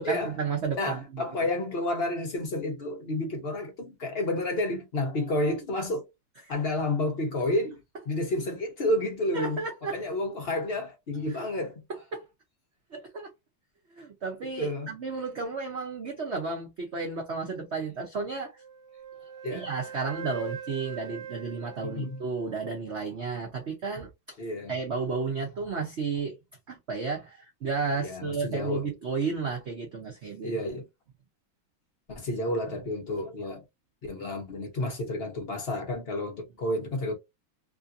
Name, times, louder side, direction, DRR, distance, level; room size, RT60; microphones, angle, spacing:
voice 1, 0.0-1.2 9.3-10.0 11.3-11.5 12.1-12.2 12.9-13.3 14.0-18.5 19.5-24.4 24.7-26.3 26.7-30.5, right 4 dB, 75° right, 0.6 m, -32 dB
voice 2, 0.8-6.0 6.5-9.6 9.9-11.8 14.6-14.9 19.4-19.7 21.8-22.2 24.4-24.8 28.0-28.9 30.4-30.9 32.1-33.6 34.0-37.1, left 1 dB, 50° left, 0.7 m, -30 dB
Wind instrument woodwind instrument, 18.6-22.8, right 7 dB, 50° right, 1.2 m, -42 dB
3.2 x 2.6 x 2.5 m
omnidirectional pair, 2.2 m